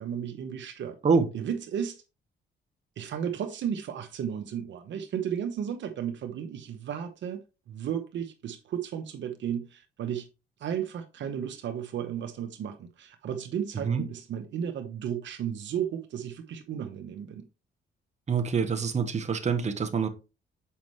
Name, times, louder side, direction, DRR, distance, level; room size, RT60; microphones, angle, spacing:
voice 1, 0.0-1.0 1.3-2.0 3.0-10.3 10.6-17.5, right 8 dB, 70° right, 1.0 m, -34 dB
voice 2, 18.3-20.1, right 5 dB, 35° right, 1.3 m, -25 dB
7.1 x 5.2 x 3.1 m
cardioid pair, 90°, 20 cm